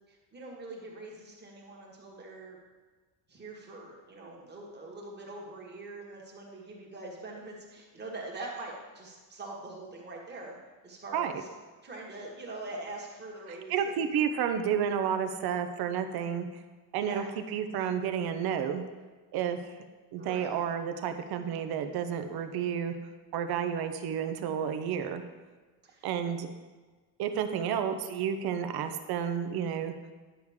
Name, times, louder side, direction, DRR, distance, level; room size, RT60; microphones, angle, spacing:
voice 1, 0.1-2.6 3.3-10.5 10.8-11.5 11.8-14.0 17.0-17.3 20.2-20.5 25.8-26.1, right 2 dB, 20° right, -2 dB, 1.7 m, -43 dB
voice 2, 13.7-16.5 16.9-17.2 17.5-18.8 19.3-19.6 20.1-22.9 23.3-25.2 26.0-26.5 27.2-29.9, right 8 dB, 50° right, 8 dB, 0.8 m, -31 dB
10.5 x 6.4 x 3.6 m, 1.3 s
cardioid pair, 145°, 50 cm